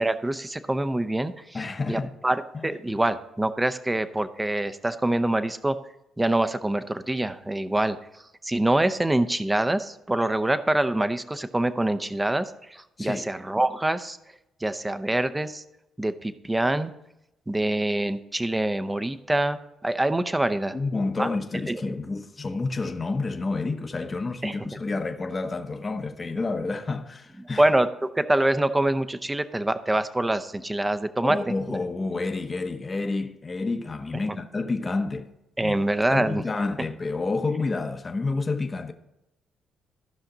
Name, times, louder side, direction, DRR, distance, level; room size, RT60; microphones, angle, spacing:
voice 1, 0.0-1.6 1.9-5.8 6.2-14.2 14.6-15.6 16.0-16.9 17.5-20.8 21.2-21.3 21.7-22.0 24.4-24.6 27.6-27.9 28.1-31.4 31.7-31.8 35.6-36.4, right 1 dB, 15° right, 0.7 m, -25 dB
voice 2, 1.5-2.1 2.5-2.7 13.0-13.2 20.7-27.6 31.2-35.3 35.6-38.9, left 3 dB, 30° left, 0.9 m, -29 dB
14.0 x 5.8 x 3.9 m
cardioid pair, 90°, 0 cm